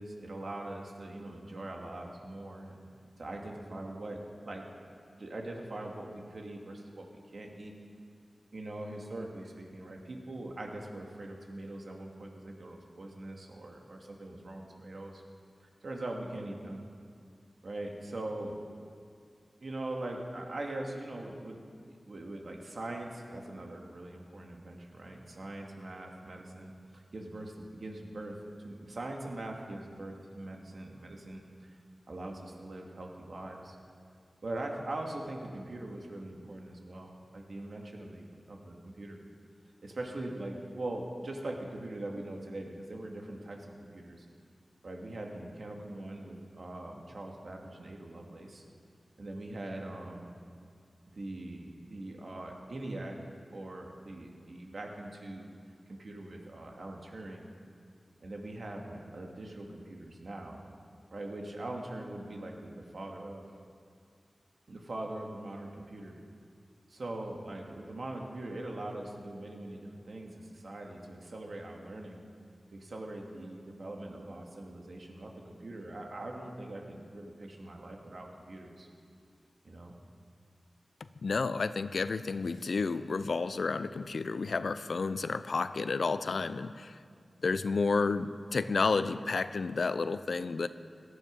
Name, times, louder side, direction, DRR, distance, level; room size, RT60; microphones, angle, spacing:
voice 1, 0.0-2.8 3.2-4.6 5.0-7.7 8.5-15.2 15.6-16.8 17.6-18.6 19.6-21.6 22.1-31.7 32.1-33.8 34.4-38.2 38.5-39.2 39.8-44.3 44.8-48.6 49.2-50.3 51.1-53.2 53.5-55.5 55.9-57.5 58.2-60.6 61.1-63.5 64.7-66.2 66.9-72.2 72.7-78.9 79.6-80.0, right 1 dB, 70° right, 1 dB, 2.3 m, -42 dB
voice 2, 81.2-87.0 87.4-90.7, left 4 dB, 80° left, 13 dB, 0.5 m, -31 dB
18.0 x 12.0 x 5.4 m, 2.2 s
cardioid pair, 50°, 0 cm